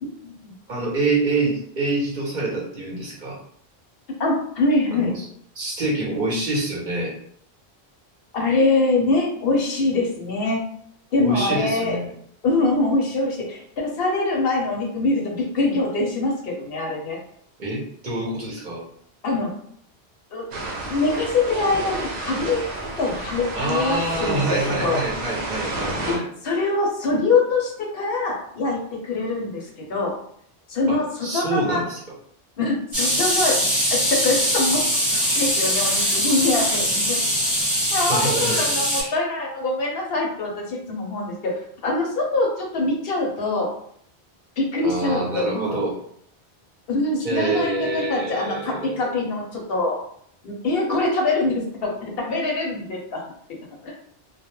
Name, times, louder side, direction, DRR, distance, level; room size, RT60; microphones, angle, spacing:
voice 1, 0.0-0.5 4.2-5.1 8.3-10.6 11.1-12.0 12.4-17.2 19.2-19.5 20.3-20.5 20.9-22.6 23.0-25.0 26.1-26.2 26.4-30.1 30.7-31.8 32.6-33.6 33.9-37.2 37.9-43.7 44.6-45.9 46.9-50.0 50.4-53.2 53.8-53.9, left 2 dB, 65° left, -1 dB, 0.8 m, -24 dB
voice 2, 0.7-3.4 4.9-5.2 5.5-7.1 11.2-12.1 17.6-18.8 23.5-26.2 30.9-32.0 37.9-39.1 44.8-46.0 47.2-49.3, right 2 dB, 50° right, -4 dB, 0.7 m, -26 dB
sound 1, 20.5-26.2, right 2 dB, 85° right, 0.9 m, -30 dB
sound 2, 32.9-39.0, equal, 15° right, 1.0 m, -22 dB
2.2 x 2.0 x 2.9 m, 0.64 s
omnidirectional pair, 1.1 m